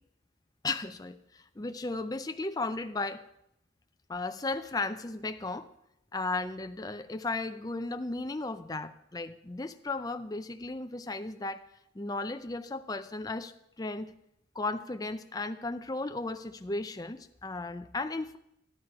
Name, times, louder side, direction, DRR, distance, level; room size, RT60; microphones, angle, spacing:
voice 1, 0.6-3.2 4.1-5.7 6.1-11.7 11.9-13.5 13.8-14.1 14.5-18.4, left 3 dB, 20° left, 8 dB, 0.5 m, -35 dB
13.0 x 11.0 x 4.8 m, 0.81 s
head